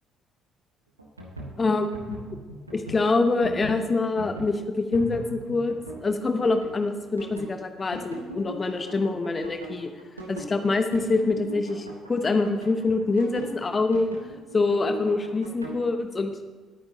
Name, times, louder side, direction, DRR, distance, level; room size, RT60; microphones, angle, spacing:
sound 1, 1.0-15.8, right 1 dB, 85° right, 1.3 m, -40 dB
voice 1, 1.6-2.2 2.7-5.8 6.0-9.9 10.3-14.2 14.5-16.3, left 3 dB, 30° left, 7 dB, 1.0 m, -25 dB
19.5 x 9.4 x 2.8 m, 1.3 s
figure-of-eight pair, 50°, 0 cm